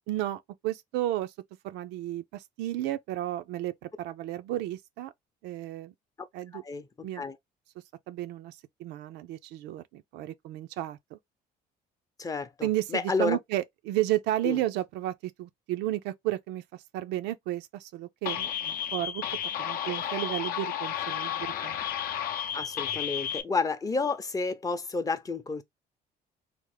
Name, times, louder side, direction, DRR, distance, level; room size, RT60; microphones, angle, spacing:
voice 1, 0.1-1.3 1.6-5.1 5.4-5.9 6.3-6.6 7.0-7.3 8.1-11.2 12.6-19.2 19.6-21.8, right 14 dB, 90° right, 0.4 m, -33 dB
voice 2, 6.6-7.4 12.2-13.4 14.4-14.6 22.5-25.6, left 4 dB, 20° left, 0.5 m, -31 dB
sound 1, 18.3-23.4, left 9 dB, 65° left, 0.5 m, -32 dB
3.4 x 2.1 x 3.2 m
cardioid pair, 110°, 17 cm